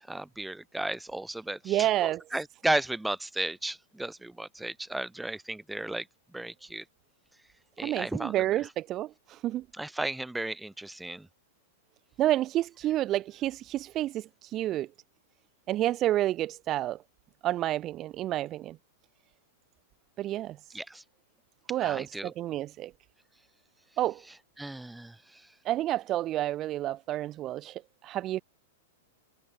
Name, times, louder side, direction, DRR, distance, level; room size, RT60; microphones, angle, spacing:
voice 1, 0.0-1.9 2.3-6.1 6.3-6.8 7.8-8.7 9.7-11.3 20.7-21.0 21.8-22.3 24.3-25.5, right 1 dB, 5° right, 4.4 m, -34 dB
voice 2, 1.7-2.2 7.8-9.6 12.2-14.9 15.7-17.0 17.4-18.8 20.2-20.8 21.7-22.9 24.0-24.2 25.6-28.4, right 14 dB, 35° right, 0.4 m, -29 dB
hypercardioid pair, 100°, 0 cm